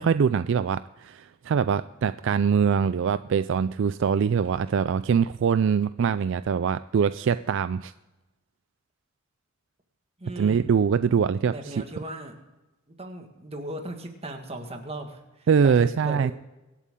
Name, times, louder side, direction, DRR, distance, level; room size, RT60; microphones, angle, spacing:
voice 1, 0.0-7.9 10.4-11.8 15.5-16.3, right 6 dB, 65° right, 14 dB, 0.3 m, -23 dB
voice 2, 10.2-10.6 11.4-12.4 13.0-16.3, right 1 dB, 30° right, 4 dB, 1.7 m, -37 dB
24.0 x 8.3 x 3.7 m, 1.1 s
head